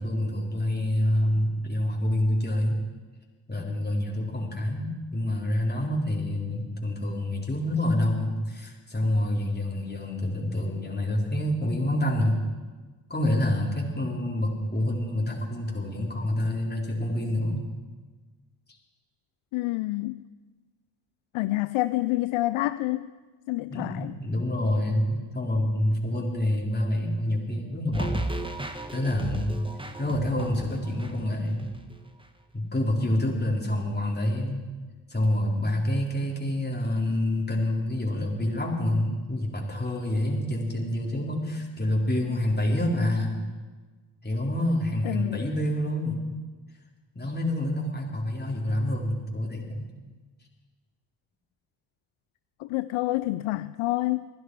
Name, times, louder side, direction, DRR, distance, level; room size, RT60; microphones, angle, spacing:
voice 1, 0.0-2.8 3.5-12.4 13.1-17.7 23.7-28.2 28.9-29.6 30.0-31.7 32.5-34.6 35.1-43.4 44.2-46.2 47.1-49.9, left 1 dB, 20° left, -2 dB, 3.8 m, -27 dB
voice 2, 19.5-20.2 21.3-23.1 23.5-24.1 42.3-42.4 45.0-45.4 52.6-54.2, left 18 dB, 80° left, 14 dB, 0.6 m, -28 dB
sound 1, 27.9-32.0 32.2-32.3, right 2 dB, 10° right, 1.6 m, -35 dB
28.0 x 11.0 x 4.7 m, 1.3 s
supercardioid pair, 55°, 49 cm